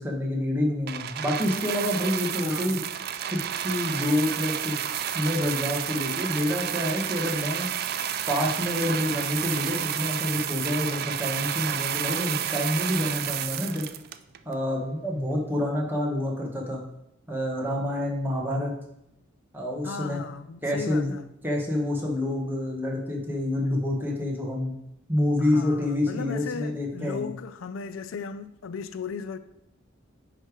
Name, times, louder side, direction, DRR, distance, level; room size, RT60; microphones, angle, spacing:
voice 1, 0.0-2.8 3.3-4.7 5.1-7.7 8.3-13.9 14.4-16.8 17.3-18.7 19.5-20.2 20.6-21.1 21.4-24.7 25.1-27.3, left 1 dB, 10° right, 1.3 m, -27 dB
sound 1, 0.9-14.5 15.3-15.4, right 10 dB, 50° right, 0.4 m, -30 dB
voice 2, 2.3-2.9 19.8-21.3 25.4-29.4, left 6 dB, 75° left, 0.4 m, -36 dB
9.8 x 3.4 x 4.8 m
head